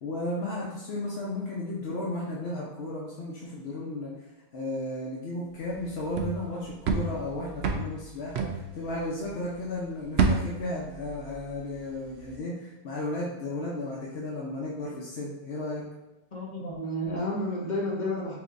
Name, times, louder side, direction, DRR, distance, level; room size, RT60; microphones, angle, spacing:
voice 1, 0.0-4.1 4.5-8.5 8.7-15.8, left 1 dB, 80° left, -5 dB, 1.1 m, -34 dB
sound 1, 5.7-9.5 9.8-11.8 12.1-12.4, right 4 dB, 85° right, 0.9 m, -30 dB
voice 2, 16.3-18.4, left 1 dB, 45° left, -4 dB, 1.3 m, -31 dB
7.0 x 2.9 x 2.6 m, 1.0 s
omnidirectional pair, 1.0 m